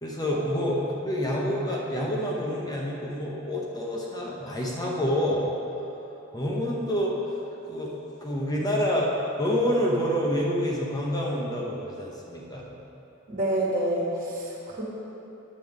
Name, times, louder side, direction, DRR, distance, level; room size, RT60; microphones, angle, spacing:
voice 1, 0.0-5.5 6.3-7.2 7.6-7.9 8.2-9.1 9.4-12.6, equal, 20° left, -3 dB, 0.8 m, -27 dB
voice 2, 13.3-14.8, right 1 dB, 45° right, -4 dB, 1.6 m, -27 dB
9.6 x 7.5 x 3.6 m, 2.9 s
head